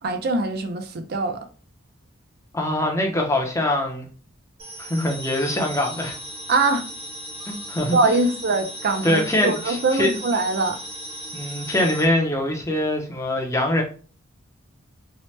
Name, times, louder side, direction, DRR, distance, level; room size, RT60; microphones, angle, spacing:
voice 1, 0.0-1.5 6.5-6.8 7.9-10.8, right 3 dB, 50° right, 0.5 m, -22 dB
voice 2, 2.5-4.1 4.8-6.2 7.5-8.3 9.0-10.1 11.3-13.8, left 1 dB, 15° left, 0.5 m, -23 dB
sound 1, 4.6-12.1, equal, 25° right, 0.8 m, -37 dB
2.8 x 2.1 x 3.1 m
head